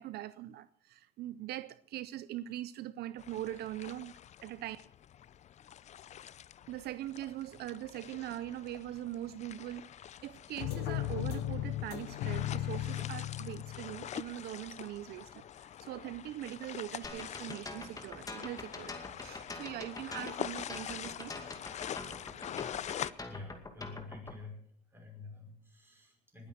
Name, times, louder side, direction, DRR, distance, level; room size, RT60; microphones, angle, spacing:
voice 1, 0.0-4.1 4.4-4.8 6.7-9.9 10.2-21.4, right 14 dB, 70° right, 0.6 m, -42 dB
sound 1, 3.2-23.1, left 10 dB, 45° left, 0.5 m, -45 dB
sound 2, 10.6-14.2, left 13 dB, 90° left, 1.0 m, -36 dB
sound 3, 17.0-24.4, left 3 dB, 20° left, 2.3 m, -44 dB
voice 2, 23.3-24.6 24.9-26.5, left 3 dB, 15° right, 5.7 m, -48 dB
20.0 x 8.7 x 6.4 m
cardioid pair, 110°, 17 cm